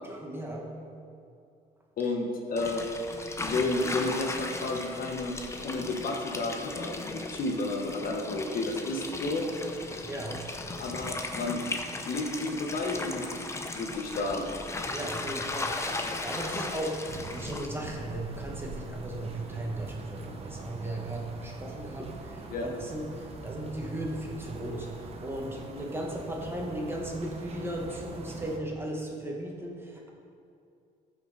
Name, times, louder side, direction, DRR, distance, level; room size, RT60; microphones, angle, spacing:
voice 1, 0.0-0.7 10.0-10.4 14.9-30.1, right 1 dB, 15° right, -1 dB, 1.7 m, -36 dB
voice 2, 2.0-2.9 3.4-5.3 5.6-9.4 10.8-11.6 12.0-13.3 13.7-14.5 22.5-22.7, left 2 dB, 55° left, 1 dB, 1.4 m, -31 dB
sound 1, 2.6-17.7, left 2 dB, 15° left, 0.8 m, -37 dB
sound 2, 17.1-28.6, right 3 dB, 35° right, 1.1 m, -43 dB
14.5 x 6.3 x 4.2 m, 2.5 s
cardioid pair, 110°, 17 cm